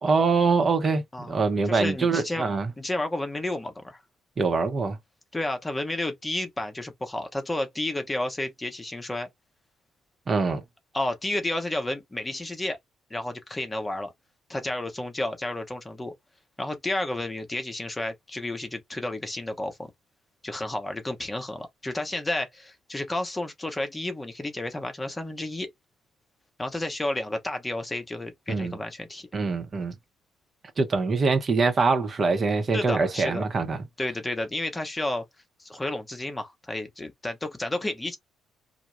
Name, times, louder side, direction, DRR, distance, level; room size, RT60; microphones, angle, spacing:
voice 1, 0.0-2.7 4.4-5.0 10.3-10.6 28.5-28.8 29.3-29.9 30.8-33.8, right 4 dB, 45° right, 0.7 m, -24 dB
voice 2, 1.7-2.4 2.8-4.0 5.3-9.3 10.9-12.8 13.1-14.1 14.5-16.1 16.6-19.9 20.4-25.7 26.6-29.3 32.7-33.5 34.0-35.2 35.6-38.2, left 1 dB, 20° left, 0.8 m, -31 dB
2.2 x 2.1 x 2.9 m
hypercardioid pair, 45°, 0 cm